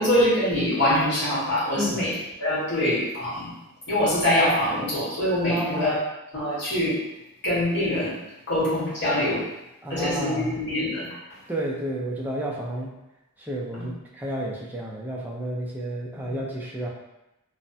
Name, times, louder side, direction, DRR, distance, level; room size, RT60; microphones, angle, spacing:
voice 1, 0.0-2.1 2.4-3.5 3.9-6.0 6.3-7.0 7.4-8.1 8.5-9.5 9.9-11.1 13.8-13.9 16.1-16.3, left 1 dB, 55° left, -9 dB, 1.4 m, -24 dB
voice 2, 5.5-6.0 9.8-10.6 11.5-12.9 13.4-16.9, right 1 dB, 10° right, -4 dB, 0.4 m, -31 dB
3.2 x 2.0 x 2.6 m, 0.93 s
head